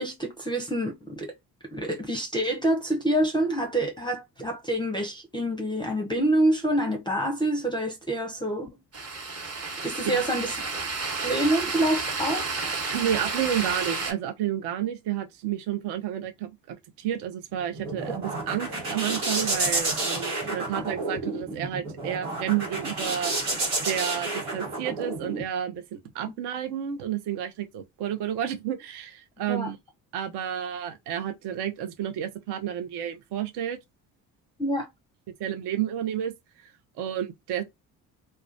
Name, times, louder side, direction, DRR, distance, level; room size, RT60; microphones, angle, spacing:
voice 1, 0.0-1.3 1.6-8.7 9.8-10.5 11.2-12.5 29.5-29.7 34.6-34.9, right 1 dB, 10° left, 0.5 m, -27 dB
sound 1, 8.9-14.1, right 4 dB, 30° right, 1.0 m, -31 dB
voice 2, 12.9-23.3 23.9-29.8 30.1-33.8 35.4-36.3 37.0-37.6, right 10 dB, 60° right, 0.7 m, -31 dB
sound 2, 17.5-25.4, right 2 dB, 90° right, 1.2 m, -30 dB
2.3 x 2.2 x 2.5 m
hypercardioid pair, 50°, 46 cm